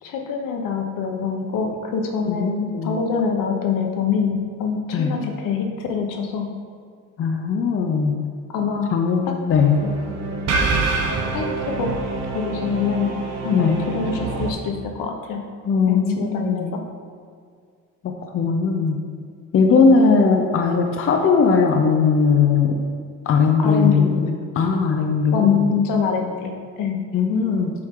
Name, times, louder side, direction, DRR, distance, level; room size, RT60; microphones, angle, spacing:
voice 1, 0.0-6.5 8.5-8.9 9.8-9.9 11.3-11.9 12.3-13.1 13.4-15.4 15.9-16.8 19.7-20.2 23.6-24.2 25.3-27.0, left 6 dB, 80° left, 3 dB, 1.1 m, -24 dB
voice 2, 2.3-3.0 4.9-5.1 7.2-8.2 8.9-9.8 13.5-13.8 15.6-16.7 18.0-19.0 19.5-22.8 23.3-25.7 27.1-27.7, left 5 dB, 40° left, 3 dB, 0.7 m, -19 dB
sound 1, 9.5-14.5, right 3 dB, 55° right, 1.1 m, -26 dB
7.6 x 6.2 x 3.8 m, 2.1 s
cardioid pair, 140°, 32 cm